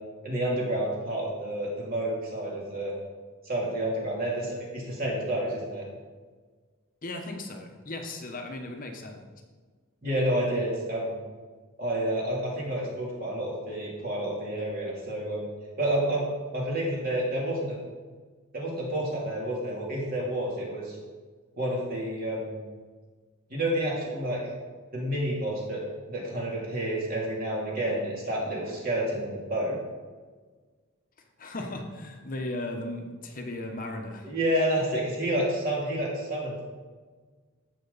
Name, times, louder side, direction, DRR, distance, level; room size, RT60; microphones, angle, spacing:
voice 1, 0.2-2.9 3.4-5.8 10.0-11.2 11.8-15.5 15.8-16.2 16.5-17.8 18.5-21.0 21.6-22.6 23.5-24.4 24.9-25.8 26.1-29.8 34.2-36.7, right 1 dB, 45° right, -4 dB, 3.0 m, -29 dB
voice 2, 7.0-9.2 31.4-34.3, left 2 dB, 40° left, 3 dB, 1.0 m, -36 dB
15.0 x 6.3 x 4.0 m, 1.4 s
head